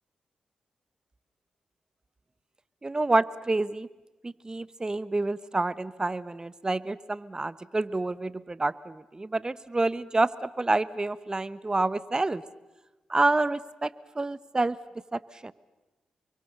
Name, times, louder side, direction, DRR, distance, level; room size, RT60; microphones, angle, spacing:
voice 1, 2.8-3.9 4.2-12.4 13.1-13.9 14.1-14.8 15.1-15.5, right 2 dB, 30° right, 18 dB, 1.1 m, -28 dB
27.5 x 24.0 x 6.7 m, 1.1 s
supercardioid pair, 40°, 3 cm